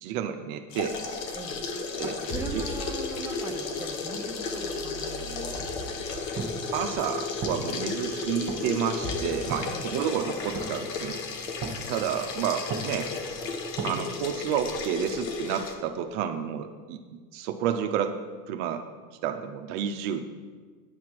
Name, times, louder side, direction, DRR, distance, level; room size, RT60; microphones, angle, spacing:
voice 1, 0.0-1.0 2.0-2.2 2.5-2.6 6.7-11.2 11.9-13.1 13.8-17.0 17.3-18.1 18.5-18.8 19.2-20.3, right 9 dB, 55° right, 6 dB, 0.7 m, -30 dB
sound 1, 0.7-15.7, left 4 dB, 75° left, 1.2 m, -34 dB
sound 2, 0.8-1.2 2.1-3.4 4.2-6.5 8.8-9.8, equal, 25° left, 1.8 m, -41 dB
voice 2, 1.3-1.7 2.0-6.0 9.7-9.9, right 3 dB, 5° right, 1 dB, 0.9 m, -41 dB
sound 3, 6.1-13.9, right 4 dB, 40° right, 1.1 m, -39 dB
9.5 x 5.8 x 4.6 m, 1.5 s
hypercardioid pair, 80°, 49 cm